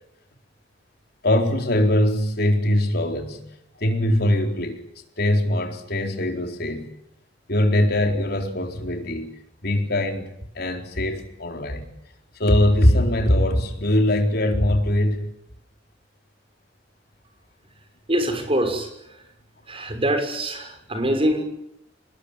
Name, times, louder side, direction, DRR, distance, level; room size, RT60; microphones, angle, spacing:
voice 1, 1.2-3.4 3.8-4.8 5.2-6.9 7.5-9.3 9.6-10.3 10.5-11.9 12.3-15.3, left 1 dB, 60° left, 4 dB, 4.2 m, -21 dB
voice 2, 18.1-19.2 19.7-21.4, right 1 dB, 30° right, 6 dB, 6.4 m, -24 dB
26.5 x 20.5 x 9.9 m, 0.76 s
head